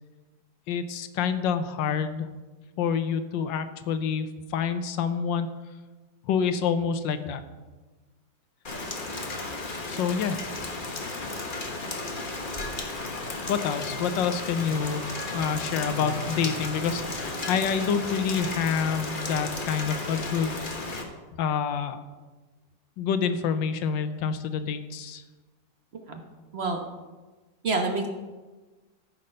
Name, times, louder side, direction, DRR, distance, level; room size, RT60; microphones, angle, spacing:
voice 1, 0.7-2.3 2.8-5.5 6.2-7.4 9.9-10.4 13.5-15.0 15.3-20.6 21.4-22.0 23.0-25.2, left 7 dB, 90° left, 10 dB, 1.4 m, -27 dB
Rain, 8.6-21.0, left 2 dB, 30° left, 1.2 m, -34 dB
Clock, 13.9-20.6, right 1 dB, 70° left, 4.1 m, -44 dB
voice 2, 27.6-28.1, right 3 dB, 45° right, 3 dB, 1.0 m, -27 dB
13.5 x 5.7 x 5.4 m, 1.3 s
omnidirectional pair, 2.0 m